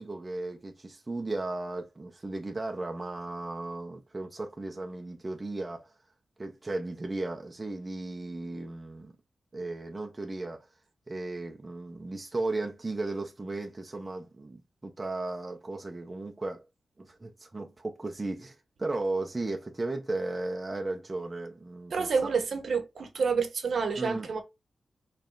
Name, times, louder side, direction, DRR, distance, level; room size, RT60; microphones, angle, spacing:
voice 1, 0.0-5.9 6.4-9.1 9.5-10.7 11.1-16.6 17.0-22.3 24.0-24.4, right 2 dB, 25° right, 0.8 m, -35 dB
voice 2, 21.9-24.4, right 5 dB, 70° right, 1.0 m, -28 dB
4.8 x 3.3 x 2.5 m
wide cardioid pair, 120°, 0 cm